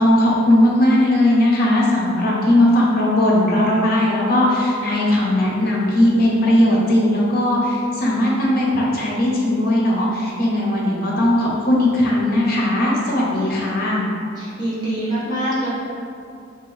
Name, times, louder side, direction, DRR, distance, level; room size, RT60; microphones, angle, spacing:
voice 1, 0.0-14.1, left 1 dB, 50° left, -4 dB, 0.7 m, -18 dB
voice 2, 14.4-15.7, right 1 dB, 20° right, -12 dB, 1.3 m, -24 dB
2.9 x 2.8 x 4.0 m, 2.5 s
head